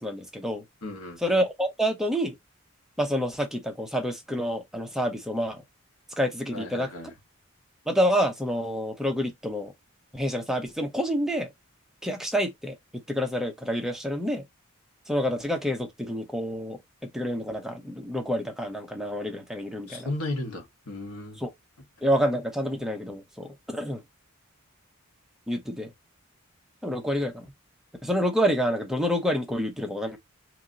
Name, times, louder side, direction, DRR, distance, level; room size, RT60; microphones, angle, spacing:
voice 1, 0.0-0.6 1.2-2.3 3.0-5.6 6.2-6.9 7.9-9.7 10.1-11.5 12.0-12.7 13.1-14.4 15.1-20.1 21.4-21.5 22.0-24.0 25.5-25.9 26.8-27.5 28.0-30.2, equal, ahead, 0.7 m, -28 dB
voice 2, 0.8-1.2 6.5-7.1 19.9-21.4, left 2 dB, 90° left, 1.6 m, -34 dB
3.0 x 2.9 x 3.7 m
head